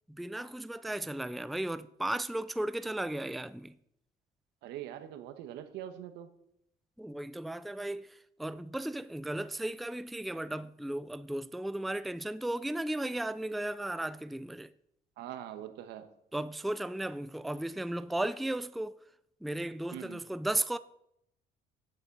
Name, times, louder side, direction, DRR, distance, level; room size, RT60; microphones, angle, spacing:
voice 1, 0.1-3.8 7.0-14.7 16.3-19.0 19.4-20.8, right 1 dB, ahead, 0.3 m, -35 dB
voice 2, 4.6-6.3 15.2-16.1 19.9-20.2, right 11 dB, 85° right, 1.2 m, -43 dB
9.7 x 7.6 x 5.9 m
cardioid pair, 110°, 17 cm